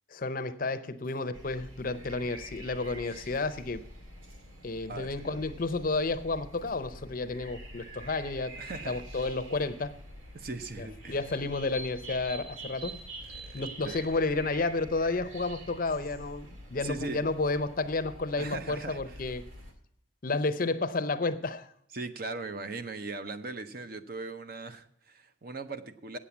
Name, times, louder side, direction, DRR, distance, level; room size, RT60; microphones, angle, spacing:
voice 1, 0.1-3.8 4.6-8.5 8.9-10.0 10.8-13.0 13.5-19.4 20.2-21.7, left 3 dB, 45° left, 11 dB, 0.6 m, -31 dB
sound 1, 1.3-19.7, right 1 dB, 80° right, 1.8 m, -46 dB
voice 2, 4.9-5.4 8.6-9.0 10.3-11.2 13.3-14.0 16.8-17.2 18.4-19.2 21.9-26.2, right 3 dB, 45° right, 10 dB, 0.7 m, -39 dB
8.6 x 7.3 x 8.2 m, 0.72 s
head